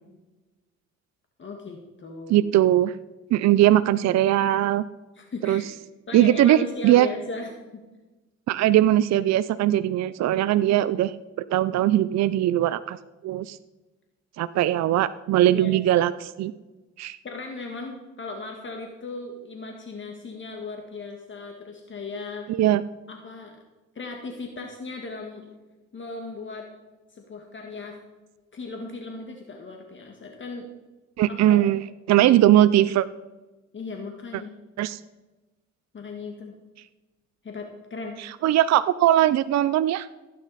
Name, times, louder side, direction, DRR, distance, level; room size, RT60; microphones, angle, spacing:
voice 1, 1.4-2.5 5.2-5.7 6.1-7.8 10.4-10.5 15.5-15.7 17.2-22.5 23.1-23.6 24.0-25.4 25.9-26.7 27.1-28.0 28.5-30.7 31.3-31.6 33.7-34.6 35.9-36.6 37.4-38.2, left 3 dB, 40° left, 2 dB, 1.7 m, -37 dB
voice 2, 2.3-2.9 3.3-4.8 5.4-5.6 6.1-7.1 8.5-11.1 11.5-13.0 13.2-13.6 14.4-16.5 17.0-17.2 22.5-22.8 31.2-31.8 32.1-33.1 34.8-35.0 38.2-40.1, right 13 dB, 60° right, 14 dB, 0.5 m, -20 dB
15.5 x 9.4 x 4.1 m, 1.1 s
cardioid pair, 90°, 30 cm